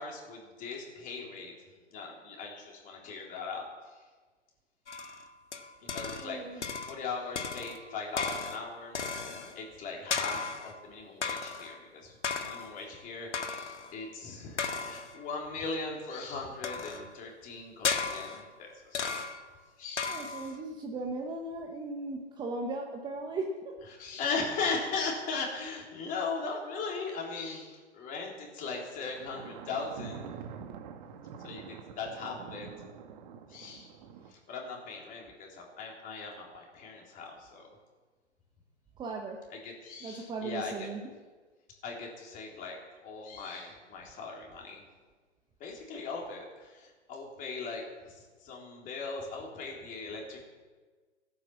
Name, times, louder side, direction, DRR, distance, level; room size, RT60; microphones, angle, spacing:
voice 1, 0.0-1.5 1.9-4.0 5.8-9.0 9.5-19.1 19.8-20.2 23.9-30.3 31.4-32.7 33.5-33.9 34.3-37.8 39.5-40.9 41.8-44.8 45.6-50.4, left 4 dB, 20° left, -1 dB, 3.7 m, -39 dB
sound 1, 4.9-6.3 6.6-7.1 7.3-9.6 10.1-10.8 11.2-11.8 12.2-12.8 13.3-13.9 14.6-15.2 16.6-17.2 17.8-18.5 18.9-19.5 20.0-20.6, left 5 dB, 75° left, 1.8 m, -35 dB
voice 2, 6.2-6.6 20.1-23.7 39.0-39.4 40.0-41.0, right 3 dB, 10° right, 1 dB, 1.1 m, -37 dB
Thunder, 29.0-34.3, right 7 dB, 35° right, 1.5 m, -46 dB
16.5 x 9.7 x 7.2 m, 1.4 s
hypercardioid pair, 130°, 36 cm